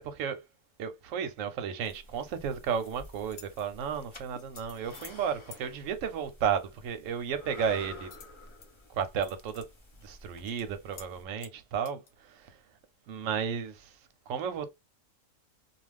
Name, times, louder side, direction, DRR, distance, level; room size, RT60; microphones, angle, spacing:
voice 1, 0.0-0.4 0.8-8.1 8.9-9.6 10.0-12.0 12.3-12.5 13.1-13.9 14.3-14.7, right 7 dB, 65° right, 0.9 m, -33 dB
sound 1, 1.8-11.2, left 2 dB, 45° left, 0.3 m, -51 dB
cutlery clinking, 2.5-2.9 3.3-3.6 4.4-5.2 5.5-5.6 8.1-8.7 9.0-9.7 10.0-10.1 10.5-10.6 11.0-11.1 11.4-12.1, left 7 dB, 75° left, 1.1 m, -50 dB
2.4 x 2.3 x 3.2 m
omnidirectional pair, 1.6 m